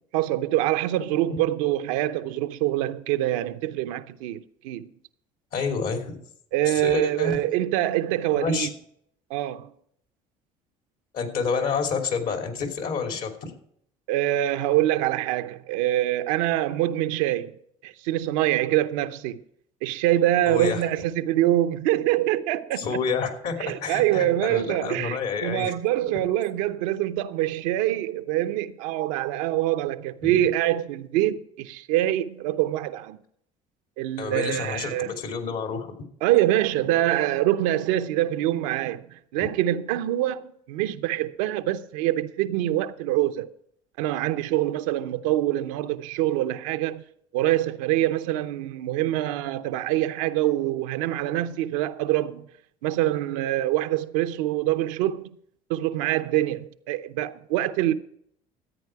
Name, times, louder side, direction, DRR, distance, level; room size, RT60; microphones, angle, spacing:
voice 1, 0.1-4.9 6.5-8.7 9.3-9.7 14.1-17.5 17.8-19.4 19.8-22.9 23.6-33.2 34.0-35.1 36.2-43.5 44.0-47.0 47.3-52.4 52.8-55.3 55.7-57.9, right 14 dB, 80° right, 0.7 m, -25 dB
voice 2, 5.5-6.2 6.6-7.4 8.3-8.7 11.1-13.5 20.5-20.8 22.8-25.7 30.2-30.5 34.2-35.9 39.4-39.5, left 5 dB, 60° left, 2.9 m, -29 dB
14.0 x 9.0 x 4.7 m
supercardioid pair, 75°, 17 cm